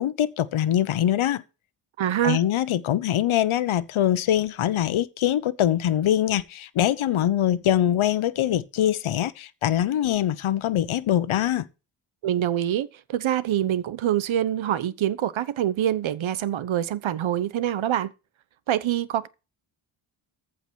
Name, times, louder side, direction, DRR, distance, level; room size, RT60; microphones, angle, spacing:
voice 1, 0.0-1.4 2.2-11.7, left 11 dB, 75° left, 1.1 m, -23 dB
voice 2, 2.0-2.4 12.2-18.1 18.7-19.3, right 11 dB, 70° right, 1.0 m, -25 dB
14.5 x 5.0 x 6.3 m
cardioid pair, 90°, 49 cm